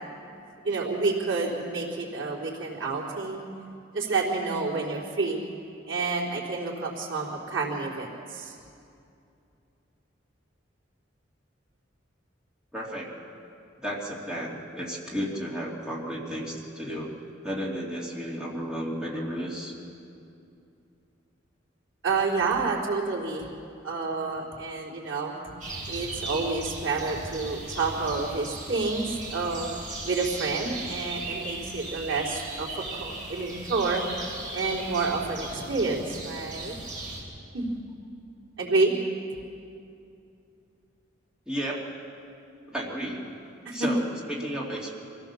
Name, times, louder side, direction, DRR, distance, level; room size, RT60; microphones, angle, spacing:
voice 1, 0.6-3.5 3.9-5.4 5.9-8.5 22.0-23.5 23.8-25.4 25.9-29.7 30.1-34.0 34.5-36.7 37.5-37.7 38.6-38.9 43.7-43.9, right 3 dB, 85° right, -3 dB, 3.9 m, -29 dB
voice 2, 12.7-13.1 13.8-17.1 17.4-19.7 41.5-42.0 42.7-43.4 43.7-44.9, equal, 5° right, -5 dB, 2.6 m, -33 dB
sound 1, 25.6-37.2, right 2 dB, 45° right, 6.1 m, -37 dB
25.5 x 16.5 x 7.0 m, 2.6 s
head